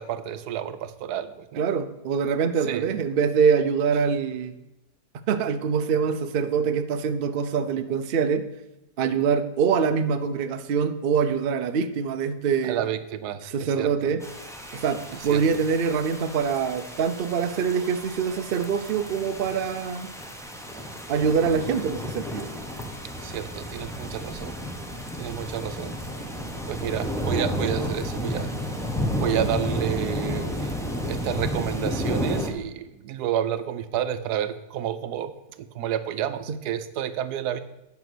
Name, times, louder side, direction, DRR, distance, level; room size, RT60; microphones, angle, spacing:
voice 1, 0.0-1.6 2.7-2.8 12.6-13.9 15.3-15.4 23.2-24.6 25.2-25.9 26.7-28.5 29.1-30.7 31.0-35.3 35.6-37.6, right 10 dB, 85° right, 12 dB, 1.2 m, -30 dB
voice 2, 1.6-4.5 5.3-8.4 9.0-12.8 13.4-14.2 14.7-20.1 21.1-22.5 36.5-36.6, right 6 dB, 55° right, 9 dB, 0.6 m, -24 dB
sound 1, 14.2-32.5, equal, ahead, 0.8 m, -32 dB
9.3 x 5.9 x 6.1 m, 0.95 s
omnidirectional pair, 1.7 m